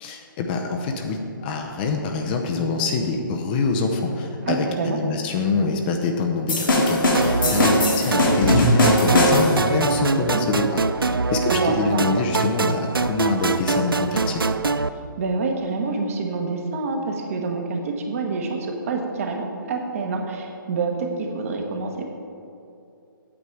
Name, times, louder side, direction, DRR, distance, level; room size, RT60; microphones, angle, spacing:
voice 1, 0.0-14.4, left 4 dB, 25° left, 3 dB, 0.7 m, -25 dB
voice 2, 4.5-5.0 7.4-7.9 10.2-10.5 11.5-12.0 15.2-22.0, right 4 dB, 40° right, 3 dB, 1.3 m, -27 dB
sound 1, 6.5-9.7, left 1 dB, 70° left, 2.1 m, -19 dB
sound 2, 7.1-14.9, right 3 dB, 85° right, 0.4 m, -24 dB
8.6 x 8.2 x 4.6 m, 2.6 s
figure-of-eight pair, 135°, 12 cm